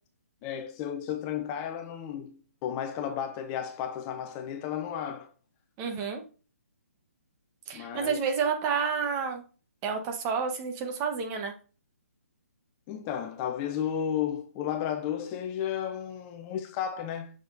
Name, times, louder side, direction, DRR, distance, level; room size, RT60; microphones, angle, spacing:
voice 1, 0.4-5.3 7.7-8.2 12.9-17.3, left 9 dB, 25° left, 0.7 m, -33 dB
voice 2, 5.8-6.2 7.7-9.4 9.8-11.6, right 6 dB, 25° right, 1.1 m, -30 dB
6.1 x 6.0 x 2.6 m
figure-of-eight pair, 140°, 8 cm